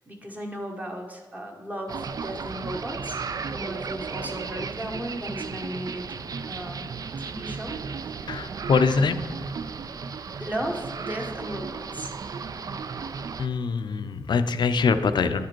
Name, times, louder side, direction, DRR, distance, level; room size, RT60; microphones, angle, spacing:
voice 1, 0.0-6.1 6.5-6.9 7.2-7.8 8.2-8.3 10.4-12.1, equal, 20° right, 1 dB, 1.2 m, -35 dB
sound 1, 1.9-13.5, right 5 dB, 50° right, 0.3 m, -35 dB
voice 2, 8.3-9.4 13.4-15.5, left 5 dB, 70° left, 10 dB, 0.5 m, -24 dB
10.5 x 5.0 x 4.5 m, 1.4 s
wide cardioid pair, 135°, 8 cm